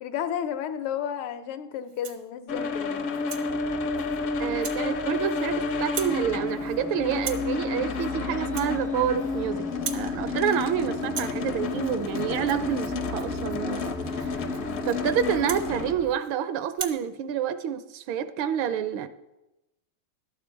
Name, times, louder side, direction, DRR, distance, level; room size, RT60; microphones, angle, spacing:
voice 1, 0.0-3.1, left 9 dB, 85° left, 9 dB, 1.6 m, -32 dB
Rattle (instrument), 1.8-2.3 2.8-3.5 4.0-4.2 4.6-4.8 5.1-5.6 5.8-6.2 6.5-6.8 7.2-7.5 7.9-8.1 8.4-9.4 9.7-10.1 10.4-10.7 11.0-16.3 16.7-17.0, right 6 dB, 60° right, 0.7 m, -40 dB
sound 1, 2.5-15.9, left 4 dB, 60° left, 0.9 m, -30 dB
sound 2, 3.5-16.1, left 2 dB, 5° right, 0.3 m, -43 dB
voice 2, 4.4-9.7 9.9-14.4 14.8-19.1, right 9 dB, 80° right, 13 dB, 1.4 m, -28 dB
12.0 x 8.2 x 4.5 m, 0.95 s
omnidirectional pair, 2.3 m